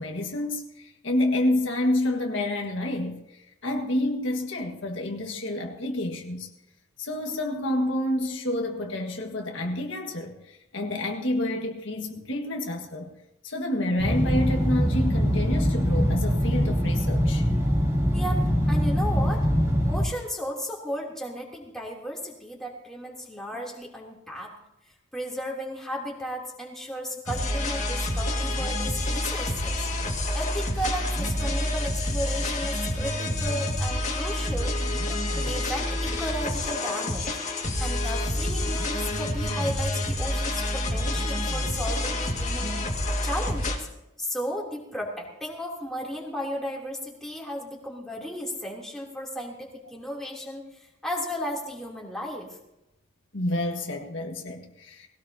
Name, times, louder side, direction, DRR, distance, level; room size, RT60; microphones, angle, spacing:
voice 1, 0.0-6.5 7.0-13.1 13.4-17.4 53.3-55.1, left 1 dB, 65° left, 1.7 m, -29 dB
sound 1, 14.0-20.0, equal, 15° right, 3.0 m, -23 dB
voice 2, 18.7-19.5 19.9-24.5 25.1-29.8 30.1-34.7 35.1-37.4 37.8-42.8 43.2-43.9 44.2-52.5, equal, ahead, 3.2 m, -34 dB
sound 2, 27.3-43.8, left 1 dB, 35° left, 2.0 m, -28 dB
20.0 x 17.5 x 2.9 m
head